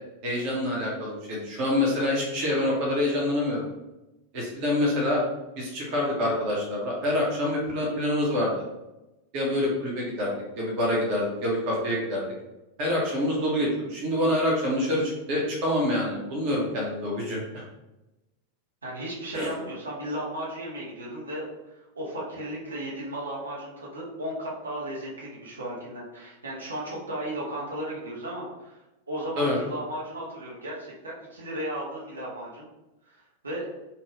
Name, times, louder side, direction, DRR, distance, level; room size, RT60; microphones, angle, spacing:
voice 1, 0.2-3.7 4.3-5.2 5.6-8.5 9.3-10.3 10.6-12.3 12.8-17.6 19.3-19.5 29.4-29.6, left 1 dB, 45° right, -2 dB, 0.8 m, -26 dB
voice 2, 18.8-28.8 29.1-32.7 33.1-33.7, right 1 dB, 75° right, -6 dB, 0.8 m, -35 dB
2.7 x 2.2 x 3.0 m, 0.99 s
figure-of-eight pair, 90°, 0 cm